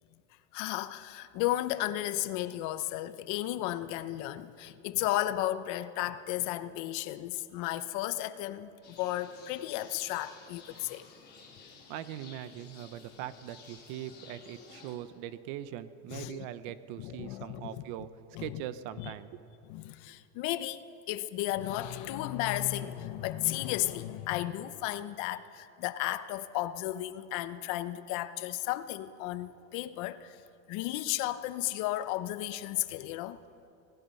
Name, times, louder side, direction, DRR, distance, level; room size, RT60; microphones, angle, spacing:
voice 1, 0.5-11.0 16.1-16.5 17.0-17.8 18.3-18.6 19.0-19.1 19.7-30.4 30.7-33.4, left 15 dB, 55° left, 12 dB, 1.0 m, -34 dB
sound 1, 8.8-15.0, left 5 dB, 30° left, 4.2 m, -53 dB
voice 2, 11.9-18.1 18.4-19.4, right 11 dB, 60° right, 13 dB, 1.1 m, -41 dB
25.0 x 18.5 x 5.6 m, 2.6 s
supercardioid pair, 140°, 35 cm